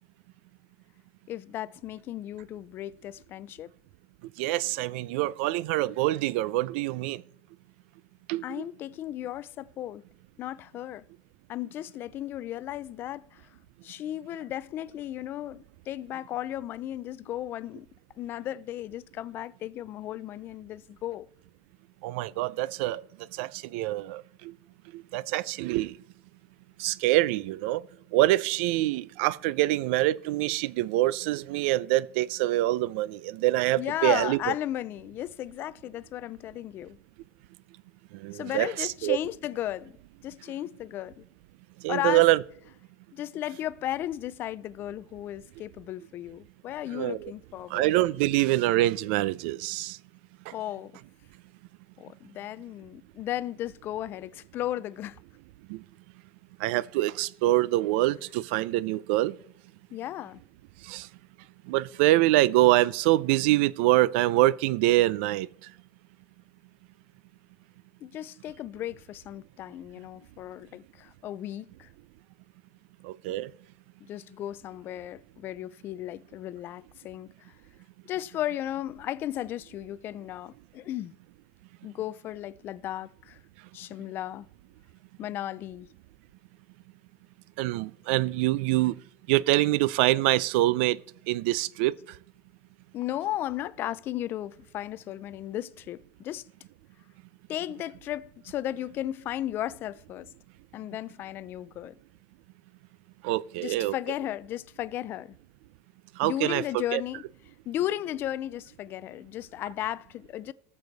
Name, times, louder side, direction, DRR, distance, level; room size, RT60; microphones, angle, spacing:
voice 1, 1.3-3.7 8.4-10.0 10.4-11.0 11.5-13.4 13.8-17.9 18.2-21.3 33.8-37.0 38.3-39.9 40.2-41.2 41.9-42.3 43.1-47.9 50.5-51.0 52.0-55.2 59.9-60.4 68.0-71.9 74.0-77.5 78.1-81.1 81.8-83.4 83.7-84.5 85.2-85.9 92.9-96.5 97.5-100.3 100.7-101.9 103.6-105.4 106.2-107.2 107.7-110.5, left 13 dB, 30° left, 0.4 m, -35 dB
voice 2, 4.4-7.2 8.3-8.6 22.0-23.0 23.3-24.5 24.9-25.9 26.8-27.8 28.1-34.4 38.1-39.2 41.8-42.4 46.9-47.3 47.7-50.0 50.5-50.6 55.7-55.8 56.6-59.3 60.8-61.1 61.7-65.5 73.0-73.5 87.6-89.0 89.3-91.0 91.3-91.9 103.2-103.9 106.2-106.6 106.9-107.0, right 17 dB, 65° right, 0.4 m, -25 dB
18.5 x 6.9 x 4.0 m
supercardioid pair, 160°, 7 cm